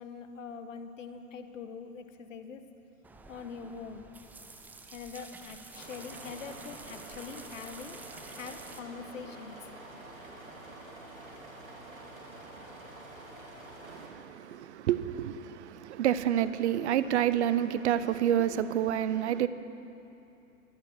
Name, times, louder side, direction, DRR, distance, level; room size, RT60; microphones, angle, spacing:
voice 1, 0.0-2.7 3.3-4.1 4.9-8.0 8.3-9.6, left 5 dB, 70° left, 1.2 m, -43 dB
sound 1, 3.0-8.8, right 3 dB, 5° right, 0.4 m, -49 dB
sound 2, 5.7-14.1, right 2 dB, 80° right, 2.8 m, -47 dB
voice 2, 13.8-19.5, right 11 dB, 55° right, 0.7 m, -28 dB
23.0 x 9.1 x 6.1 m
figure-of-eight pair, 105°, 40 cm